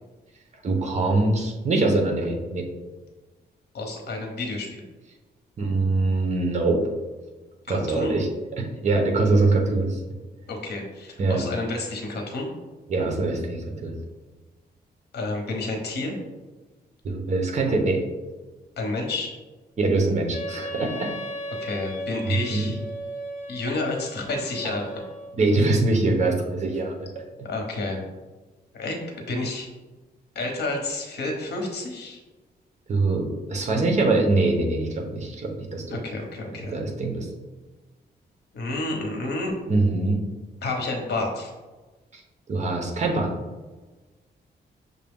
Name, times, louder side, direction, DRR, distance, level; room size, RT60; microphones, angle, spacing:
voice 1, 0.6-2.6 5.6-6.8 7.7-8.3 8.6-10.0 11.2-11.4 12.9-13.9 17.0-18.0 19.8-21.1 22.5-22.7 25.4-27.1 32.9-36.0 36.7-37.3 39.7-40.2 42.1-42.2 42.5-43.3, right 2 dB, 40° right, 2 dB, 0.8 m, -23 dB
voice 2, 3.7-4.8 7.7-8.1 10.5-12.5 15.1-16.2 18.8-19.3 21.6-22.8 23.5-24.9 27.4-28.0 28.7-29.7 30.3-32.2 35.9-36.8 38.5-39.5 40.6-41.5, left 2 dB, 70° left, 2 dB, 1.0 m, -30 dB
Wind instrument woodwind instrument, 20.3-25.4, equal, 50° left, 0.8 m, -36 dB
6.4 x 2.3 x 3.5 m, 1.2 s
wide cardioid pair, 140°, 17 cm